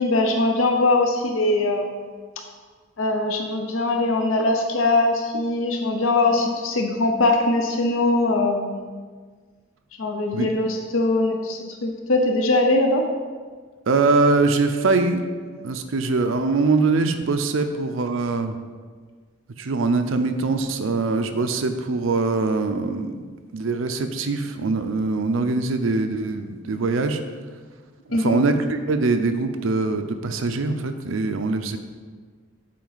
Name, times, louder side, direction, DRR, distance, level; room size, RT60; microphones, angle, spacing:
voice 1, 0.0-1.9 3.0-8.9 10.0-13.0 28.1-28.4, left 2 dB, 75° left, 3 dB, 0.6 m, -21 dB
voice 2, 13.9-15.2 15.6-18.6 19.6-23.1 23.5-27.2 28.1-31.8, right 3 dB, 70° right, 8 dB, 0.5 m, -22 dB
7.5 x 4.6 x 4.0 m, 1.5 s
head